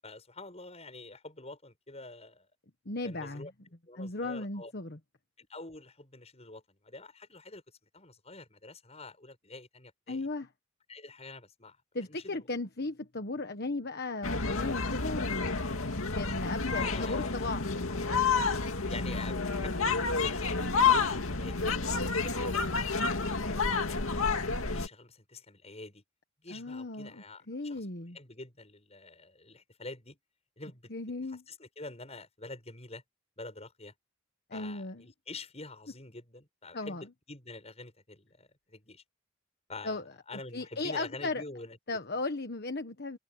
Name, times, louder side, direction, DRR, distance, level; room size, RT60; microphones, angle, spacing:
voice 1, 0.0-2.5 3.0-3.5 3.9-4.7 5.4-7.6 7.9-10.3 10.9-11.8 12.1-12.4 16.7-17.3 18.9-24.3 24.7-26.0 26.4-27.8 28.1-30.2 30.6-30.9 31.3-33.0 33.4-33.9 34.5-39.0 39.7-40.0 40.3-41.8, left 2 dB, 30° left, 7.6 m, -47 dB
voice 2, 2.8-3.5 4.0-5.0 10.1-10.5 11.9-15.5 16.0-18.2 26.5-28.2 30.9-31.4 34.5-35.0 36.7-37.1 39.8-40.0 40.5-41.4 41.9-43.2, left 2 dB, 50° left, 1.4 m, -36 dB
sound 1, 14.2-24.9, left 4 dB, 80° left, 2.3 m, -29 dB
head